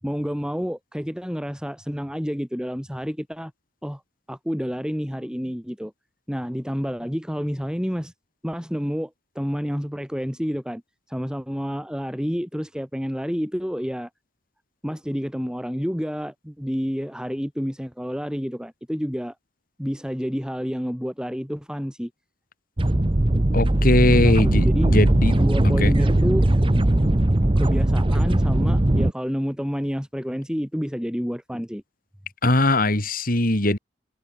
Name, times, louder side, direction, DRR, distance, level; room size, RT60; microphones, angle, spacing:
voice 1, 0.0-3.5 3.8-4.0 4.3-5.9 6.3-8.1 8.4-10.8 11.1-14.1 14.8-19.3 19.8-22.1 24.0-24.9 25.4-26.5 27.6-31.8, equal, 5° right, 7.7 m, -29 dB
sound 1, 22.8-29.1, right 1 dB, 30° right, 0.9 m, -19 dB
voice 2, 23.5-25.3 25.8-25.9 32.4-33.8, left 1 dB, 50° left, 4.2 m, -20 dB
head